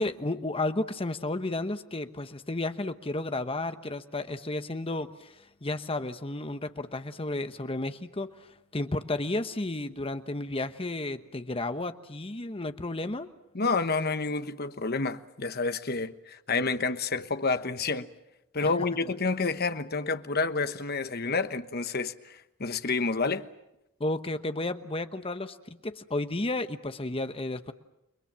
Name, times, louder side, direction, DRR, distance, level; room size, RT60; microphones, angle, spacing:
voice 1, 0.0-8.5 8.7-13.3 18.6-18.7 24.0-27.7, left 2 dB, 25° left, 1.1 m, -32 dB
voice 2, 13.5-18.1 18.5-23.5, left 4 dB, 50° left, 1.2 m, -29 dB
29.5 x 23.0 x 7.5 m
head